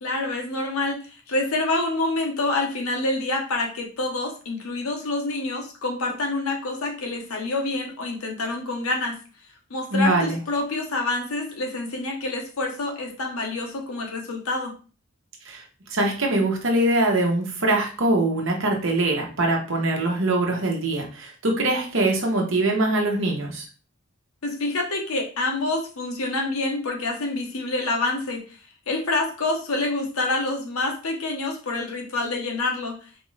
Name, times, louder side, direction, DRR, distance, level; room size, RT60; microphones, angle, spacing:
voice 1, 0.0-9.2 9.7-14.7 24.4-28.4 28.9-33.0, left 2 dB, 85° left, 1 dB, 1.0 m, -27 dB
voice 2, 9.9-10.4 15.4-15.6 15.9-23.7, right 2 dB, 65° right, 1 dB, 1.0 m, -23 dB
4.3 x 2.5 x 3.2 m, 0.36 s
head